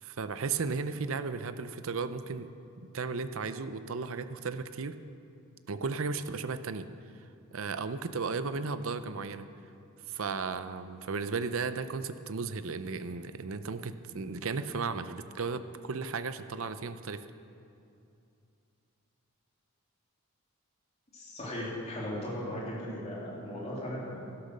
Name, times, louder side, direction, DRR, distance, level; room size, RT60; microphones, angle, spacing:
voice 1, 0.0-2.5 2.9-4.9 5.7-6.9 7.5-9.5 10.1-17.3, right 4 dB, 65° right, 12 dB, 0.6 m, -35 dB
voice 2, 21.1-24.3, left 1 dB, 30° left, -6 dB, 3.3 m, -37 dB
12.0 x 11.5 x 6.6 m, 2.6 s
head